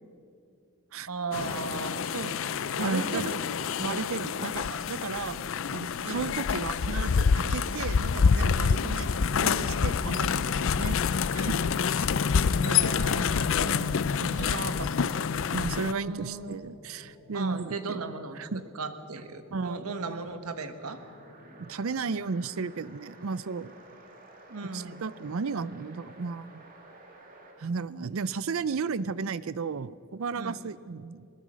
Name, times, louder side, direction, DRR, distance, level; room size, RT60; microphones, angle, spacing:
voice 1, 1.1-3.4 3.8-4.2 6.0-6.3 8.6-8.8 12.6-15.1 15.4-15.5 15.8-16.6 17.3-18.5 18.7-21.0 24.5-25.1 30.4-30.6, right 3 dB, 90° right, 9 dB, 1.3 m, -37 dB
sound 1, 1.3-15.9, left 6 dB, 65° left, 0.4 m, -27 dB
voice 2, 2.8-3.2 3.8-9.1 9.4-11.0 11.3-11.6 14.2-14.5 15.5-18.0 18.4-18.6 19.5-19.9 21.6-23.7 24.7-26.6 27.6-31.3, right 4 dB, 70° right, 17 dB, 0.5 m, -34 dB
sound 2, 8.5-22.1, left 1 dB, 35° left, 7.1 m, -53 dB
sound 3, 20.9-27.6, right 2 dB, 40° right, 2.5 m, -52 dB
21.0 x 20.0 x 6.3 m, 2.4 s
head